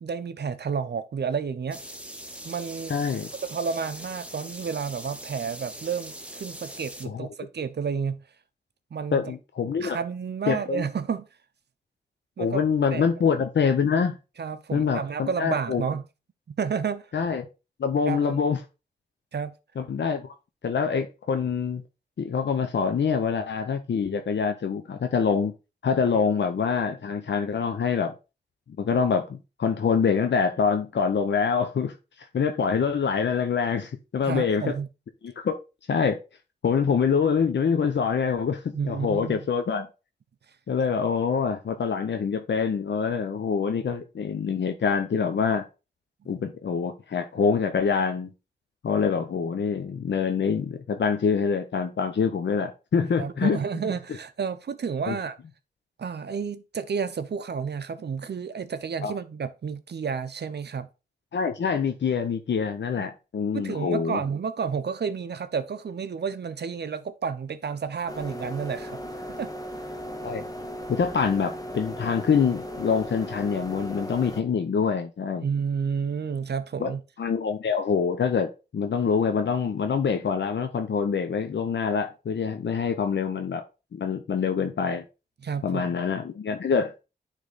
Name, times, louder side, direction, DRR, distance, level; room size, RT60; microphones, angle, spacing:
voice 1, 0.0-1.8 2.4-2.9 3.4-8.2 8.9-9.2 9.8-11.3 12.4-12.6 12.9-13.0 14.4-16.0 16.6-17.1 18.1-18.4 19.3-19.5 34.2-34.9 38.7-39.5 53.2-55.4 56.0-60.9 63.0-63.1 63.5-69.0 69.4-69.5 75.4-77.0 85.4-85.9, right 6 dB, 70° right, 0.6 m, -31 dB
sound 1, 1.7-7.1, right 1 dB, 5° right, 1.1 m, -41 dB
voice 2, 2.9-3.3 7.0-7.3 9.1-10.0 10.5-10.8 12.4-14.2 14.7-15.9 17.1-17.5 17.8-18.6 19.8-20.3 20.6-21.8 22.2-25.5 25.8-28.1 28.8-31.9 32.3-34.7 35.2-35.5 35.9-36.2 36.6-39.9 40.7-45.6 46.3-48.3 48.8-53.6 55.1-55.2 59.0-59.1 61.3-64.2 70.2-70.4 70.9-75.4 76.8-76.9 77.2-83.6 83.9-85.0 85.6-87.0, left 6 dB, 85° left, 0.7 m, -25 dB
sound 2, 68.1-74.4, equal, 20° left, 1.1 m, -37 dB
9.9 x 3.4 x 4.0 m
wide cardioid pair, 65°, 18 cm